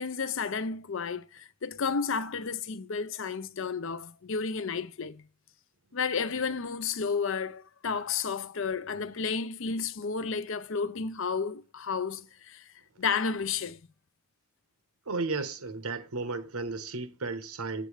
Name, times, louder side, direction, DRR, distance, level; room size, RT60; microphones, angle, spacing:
voice 1, 0.0-5.2 5.9-12.6 13.0-13.8, left 5 dB, 60° left, 0.6 m, -32 dB
voice 2, 15.1-17.9, right 3 dB, 80° right, 1.2 m, -34 dB
7.9 x 7.8 x 3.2 m
head